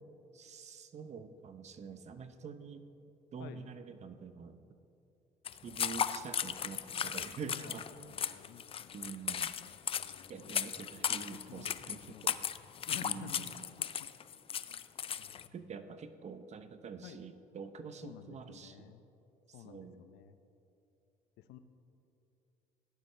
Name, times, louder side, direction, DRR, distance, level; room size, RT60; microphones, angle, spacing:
voice 1, 0.3-2.8 3.3-4.6 5.6-7.9 8.9-9.5 10.3-12.4 13.0-13.6 15.5-18.8 19.6-20.0, right 5 dB, 40° right, 10 dB, 0.8 m, -46 dB
sound 1, 5.5-15.5, left 8 dB, 35° left, 0.4 m, -36 dB
voice 2, 7.6-9.0 9.9-10.8 11.3-12.4 12.9-13.5 13.8-14.1 15.2-15.9 17.0-17.2 18.0-19.0 19.5-20.4 21.4-21.6, left 10 dB, 85° left, 10 dB, 0.7 m, -52 dB
17.0 x 11.0 x 3.3 m, 2.8 s
cardioid pair, 110°, 17 cm